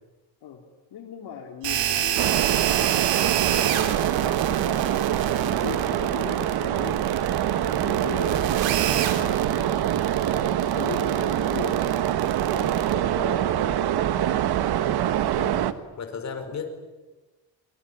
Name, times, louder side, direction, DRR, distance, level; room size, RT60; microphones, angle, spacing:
voice 1, 0.9-3.0 3.4-7.0 7.6-8.3 8.9-11.8 12.4-14.1, left 8 dB, 60° left, 2 dB, 3.2 m, -39 dB
sound 1, 1.6-12.9, right 11 dB, 90° right, 3.1 m, -28 dB
sound 2, 2.2-15.7, right 11 dB, 60° right, 1.4 m, -24 dB
voice 2, 16.0-16.7, left 6 dB, 40° left, 5 dB, 4.9 m, -35 dB
24.5 x 24.0 x 9.9 m, 1.2 s
cardioid pair, 160°, 43 cm